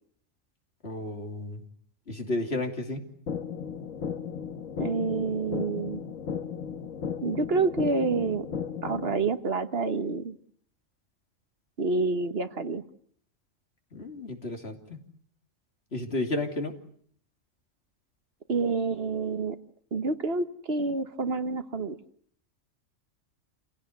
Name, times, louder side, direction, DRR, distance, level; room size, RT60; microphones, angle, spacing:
voice 1, 0.8-1.6 2.1-3.0 13.9-15.0 15.9-16.7, left 2 dB, 50° left, 4 dB, 3.3 m, -32 dB
sound 1, 3.3-9.3, left 7 dB, 80° left, 1.7 m, -35 dB
voice 2, 4.8-6.0 7.2-8.5 8.8-10.4 11.8-12.8 18.5-19.6 19.9-22.0, right 4 dB, 50° right, 10 dB, 1.5 m, -28 dB
28.5 x 17.0 x 9.4 m, 0.63 s
omnidirectional pair, 1.3 m